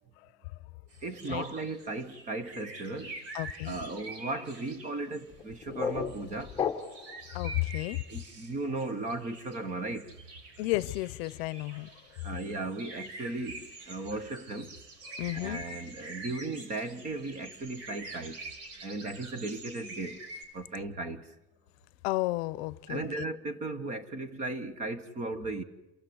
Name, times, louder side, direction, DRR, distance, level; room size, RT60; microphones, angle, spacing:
sound 1, 0.9-5.3 5.8-20.4, right 2 dB, 80° right, 4.8 m, -46 dB
voice 1, 1.0-3.1 3.6-6.5 8.1-10.1 12.2-14.7 15.3-18.4 18.8-20.2 20.5-21.2 22.9-25.6, right 2 dB, 20° right, 1.2 m, -36 dB
voice 2, 3.3-3.8 7.3-8.0 10.6-11.9 15.2-15.6 22.0-23.3, left 19 dB, 70° left, 0.7 m, -32 dB
sound 2, 5.3-7.2, left 7 dB, 15° left, 1.3 m, -34 dB
28.5 x 16.0 x 8.0 m
cardioid pair, 175°, 33 cm